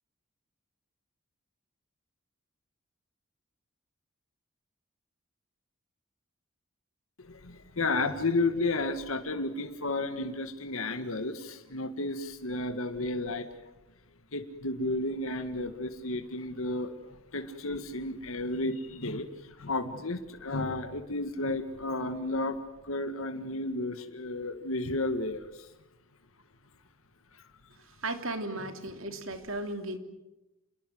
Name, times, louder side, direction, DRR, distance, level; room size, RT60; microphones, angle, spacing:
voice 1, 7.2-13.5 14.3-16.9 17.3-19.3 19.6-22.6 22.8-25.5, left 2 dB, 75° left, 7 dB, 1.8 m, -32 dB
voice 2, 28.0-30.0, right 2 dB, 70° right, 7 dB, 3.0 m, -35 dB
28.5 x 21.5 x 7.8 m, 0.99 s
head